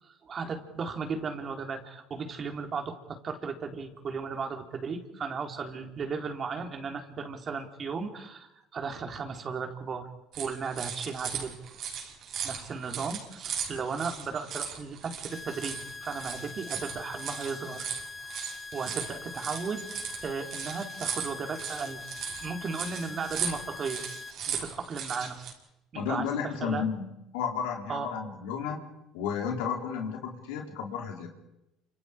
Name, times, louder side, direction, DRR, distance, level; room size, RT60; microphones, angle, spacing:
voice 1, 0.0-10.1 10.4-11.6 12.4-17.9 18.7-19.8 20.2-22.0 22.4-24.0 24.5-25.4 25.9-26.9 27.9-28.1, right 5 dB, 40° right, 5 dB, 3.6 m, -35 dB
sound 1, 10.3-25.5, right 7 dB, 55° right, 6.2 m, -38 dB
sound 2, 15.3-24.3, left 3 dB, 25° left, 1.7 m, -43 dB
voice 2, 25.9-28.8 29.1-31.3, left 7 dB, 80° left, 2 dB, 3.7 m, -32 dB
28.5 x 26.5 x 5.0 m, 0.90 s
supercardioid pair, 80°, 0 cm